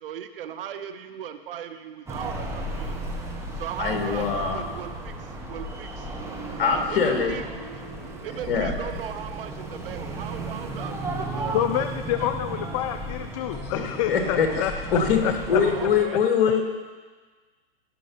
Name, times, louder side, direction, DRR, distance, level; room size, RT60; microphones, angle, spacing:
voice 1, 0.0-2.9 3.6-6.1 6.6-7.5 8.2-11.9 12.2-12.3 15.6-16.2, right 9 dB, 65° right, 10 dB, 1.0 m, -37 dB
sound 1, 2.1-16.0, right 2 dB, 10° right, 1.4 m, -34 dB
voice 2, 3.8-4.6 6.6-7.4 8.5-8.7 14.1-15.2 15.5-16.8, left 6 dB, 60° left, 3 dB, 2.4 m, -23 dB
voice 3, 11.5-15.6, left 11 dB, 30° left, 9 dB, 0.5 m, -28 dB
17.0 x 6.0 x 5.7 m, 1.4 s
hypercardioid pair, 135°, 31 cm